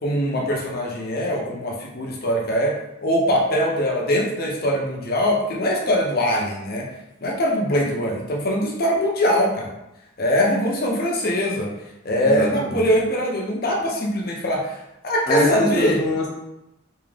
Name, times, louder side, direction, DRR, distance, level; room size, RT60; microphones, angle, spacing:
voice 1, 0.0-2.8 3.0-6.9 7.2-9.7 10.2-11.7 12.0-14.8 15.0-16.0, equal, 50° left, -2 dB, 0.8 m, -22 dB
voice 2, 12.2-12.8 15.3-16.3, left 2 dB, 20° left, -5 dB, 0.5 m, -23 dB
3.5 x 2.9 x 3.3 m, 0.89 s
head